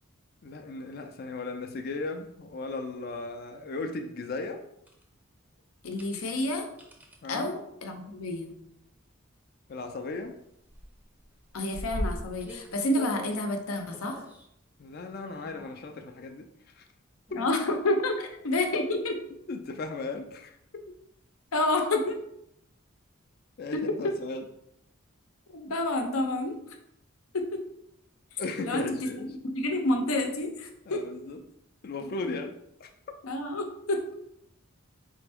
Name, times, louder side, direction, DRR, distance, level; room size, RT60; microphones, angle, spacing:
voice 1, 0.4-4.6 7.2-7.5 9.7-10.3 14.8-16.5 16.8-16.9 17.3-17.4 19.5-20.6 23.6-24.5 28.4-29.3 30.9-31.4 31.8-32.9, left 3 dB, 45° left, 5 dB, 0.4 m, -36 dB
sound 1, 4.9-5.0 5.8-6.2 6.8-7.2 8.3-8.6 9.1-9.2 9.4-10.4 10.7-13.3 13.9-14.5 15.1-16.0 17.3-17.8 18.3-18.4 20.8-20.9, equal, 10° right, 0.5 m, -40 dB
voice 2, 5.8-6.6 7.3-8.5 11.5-14.2 17.3-19.2 21.5-22.2 23.7-24.1 25.5-26.6 27.3-27.6 28.6-28.9 29.2-31.0 33.2-34.0, left 2 dB, 85° left, 4 dB, 0.7 m, -29 dB
4.3 x 3.4 x 3.4 m, 0.77 s
head